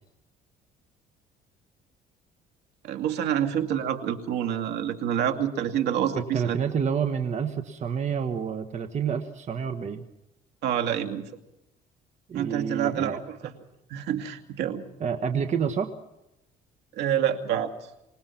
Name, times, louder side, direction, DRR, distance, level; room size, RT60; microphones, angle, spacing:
voice 1, 2.8-6.6 10.6-11.3 12.3-13.6 13.9-14.8 16.9-17.9, right 9 dB, 80° right, 6 dB, 2.4 m, -27 dB
voice 2, 6.1-10.0 12.3-13.1 15.0-15.9, right 7 dB, 45° right, 7 dB, 1.5 m, -28 dB
26.0 x 19.5 x 5.9 m, 0.87 s
cardioid pair, 110°, 17 cm